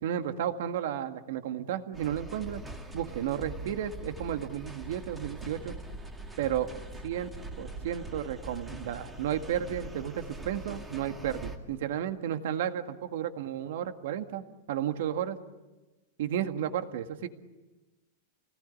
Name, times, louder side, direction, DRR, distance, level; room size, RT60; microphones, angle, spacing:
voice 1, 0.0-2.6 2.9-5.7 6.4-6.7 7.0-7.3 7.6-15.4 16.2-17.3, right 10 dB, 65° right, 7 dB, 1.9 m, -33 dB
sound 1, 1.9-11.6, right 2 dB, 10° right, 2.2 m, -43 dB
30.0 x 19.5 x 9.9 m, 1.2 s
supercardioid pair, 175°, 0 cm